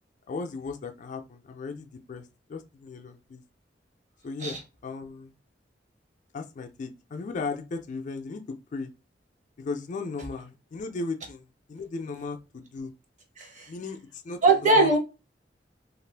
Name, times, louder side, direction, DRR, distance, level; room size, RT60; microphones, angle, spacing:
voice 1, 0.3-3.4 4.2-5.3 6.3-8.9 9.6-11.4 11.7-12.9 13.7-15.0, left 4 dB, 45° left, 0.3 m, -36 dB
voice 2, 13.4-13.7 14.4-15.0, right 2 dB, 45° right, 0.8 m, -21 dB
2.5 x 2.4 x 3.3 m
head